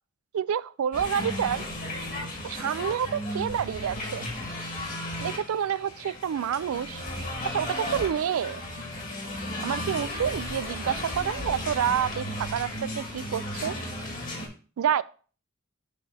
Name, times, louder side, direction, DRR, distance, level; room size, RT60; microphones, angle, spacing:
voice 1, 0.3-1.6 2.4-4.3 5.2-7.0 7.5-8.6 9.6-13.7 14.8-15.0, right 8 dB, 75° right, 0.3 m, -28 dB
sound 1, 0.9-14.5, left 1 dB, 40° left, 1.6 m, -34 dB
7.0 x 3.3 x 4.7 m
head